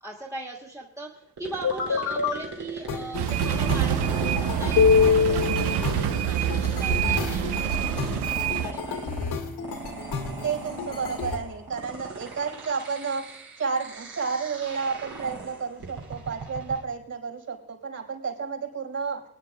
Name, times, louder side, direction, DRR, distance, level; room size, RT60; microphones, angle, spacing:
voice 1, 0.0-9.1, right 2 dB, 10° right, -3 dB, 1.6 m, -39 dB
sound 1, 1.4-16.8, right 3 dB, 70° right, 2.7 m, -40 dB
sound 2, 1.6-2.4 2.9-11.4, left 6 dB, 80° left, 1.8 m, -27 dB
sound 3, 3.1-8.7, right 9 dB, 90° right, 0.8 m, -26 dB
voice 2, 10.4-19.2, right 5 dB, 45° right, 0 dB, 4.7 m, -31 dB
25.0 x 9.9 x 2.3 m, 0.74 s
cardioid pair, 100°, 39 cm